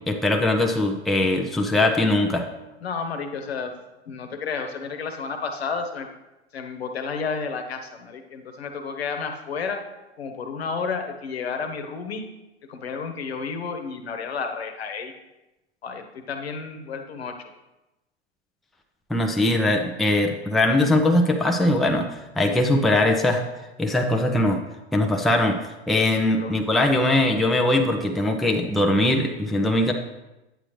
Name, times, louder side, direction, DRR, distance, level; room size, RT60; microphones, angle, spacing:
voice 1, 0.1-2.5 19.1-23.4 23.8-24.6 24.9-25.6 25.9-29.9, left 1 dB, ahead, 2 dB, 0.6 m, -21 dB
voice 2, 2.8-3.7 4.1-6.1 6.5-9.8 10.2-12.2 12.7-15.1 15.8-17.5 26.2-26.5, left 5 dB, 65° left, 6 dB, 1.3 m, -31 dB
10.0 x 8.6 x 3.2 m, 1.0 s
figure-of-eight pair, 95°, 34 cm